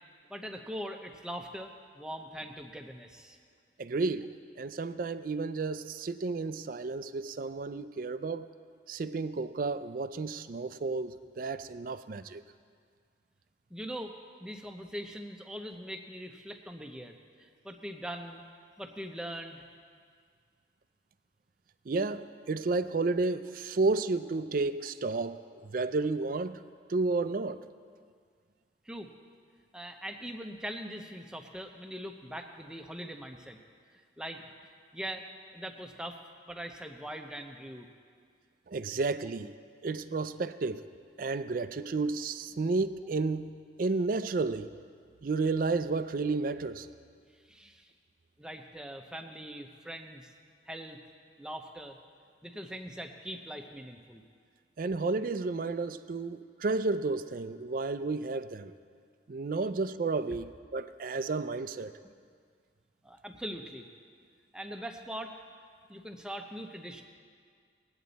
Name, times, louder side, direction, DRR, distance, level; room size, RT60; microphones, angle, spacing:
voice 1, 0.3-3.4 13.7-14.1 14.4-18.4 18.8-19.6 28.8-29.1 29.7-33.6 34.2-34.4 34.9-35.3 35.5-36.2 36.5-37.9 47.5-47.9 48.4-50.3 50.7-51.0 51.4-52.0 52.4-54.2 63.0-63.9 64.5-65.3 65.9-67.0, equal, 5° right, 4 dB, 0.7 m, -41 dB
voice 2, 3.8-4.3 4.6-8.5 8.9-12.4 21.9-26.6 26.9-27.6 38.7-39.5 39.8-40.9 41.2-43.5 43.8-44.7 45.2-46.9 54.8-58.7 59.3-61.9, right 3 dB, 45° right, 12 dB, 0.4 m, -32 dB
20.5 x 8.8 x 4.1 m, 2.1 s
head